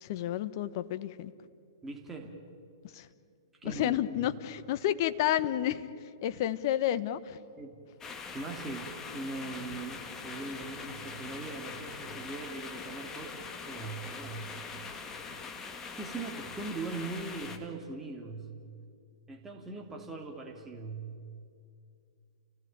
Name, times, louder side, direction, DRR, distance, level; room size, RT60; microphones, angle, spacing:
voice 1, 0.0-1.3 2.9-3.1 3.6-5.9 6.2-7.4, left 12 dB, 50° left, 12 dB, 1.3 m, -30 dB
voice 2, 1.8-2.4 3.5-3.9 7.6-7.8 8.3-14.6 15.3-15.4 15.8-18.6 19.3-21.2, right 3 dB, 10° right, 1 dB, 2.9 m, -40 dB
sound 1, 8.0-17.6, left 5 dB, 20° left, 2.3 m, -43 dB
30.0 x 17.5 x 8.9 m, 2.4 s
hypercardioid pair, 115°, 3 cm